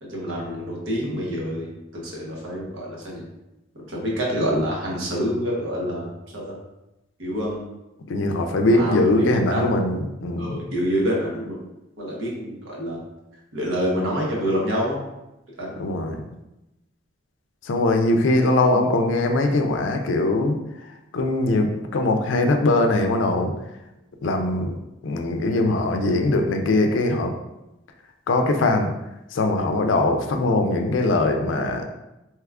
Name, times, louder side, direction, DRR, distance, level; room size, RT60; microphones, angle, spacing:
voice 1, 0.0-3.2 3.9-6.5 7.2-7.6 8.6-9.6 10.4-11.6 12.0-13.0 13.5-15.0 15.6-15.8, equal, 85° right, -3 dB, 1.0 m, -27 dB
voice 2, 8.1-10.6 15.8-16.2 17.6-20.6 20.8-23.5 24.2-24.7 25.0-27.4 28.3-28.9 29.3-31.9, left 2 dB, 70° left, 4 dB, 0.4 m, -21 dB
3.4 x 2.9 x 2.4 m, 0.94 s
head